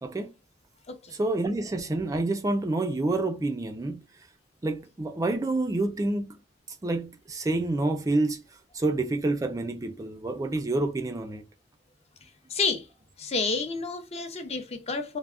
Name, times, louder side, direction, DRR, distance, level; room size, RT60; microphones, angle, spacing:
voice 1, 0.0-0.3 1.1-4.0 4.6-6.4 6.8-8.4 8.7-11.4, right 2 dB, 20° right, 0.3 m, -28 dB
voice 2, 12.5-12.9 13.2-15.2, left 4 dB, 35° left, 0.5 m, -30 dB
3.3 x 2.0 x 2.4 m
head